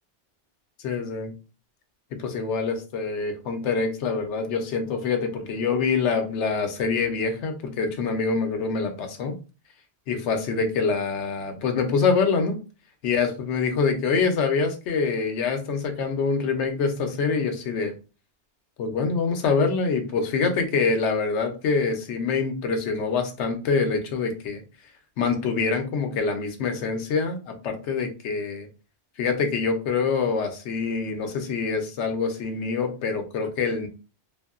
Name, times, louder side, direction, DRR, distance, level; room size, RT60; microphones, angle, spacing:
voice 1, 0.8-1.3 2.1-9.4 10.1-12.6 13.0-17.9 18.8-24.6 25.2-28.7 29.2-33.9, left 5 dB, 85° left, 6 dB, 0.9 m, -25 dB
2.7 x 2.5 x 2.4 m, 0.33 s
omnidirectional pair, 1.2 m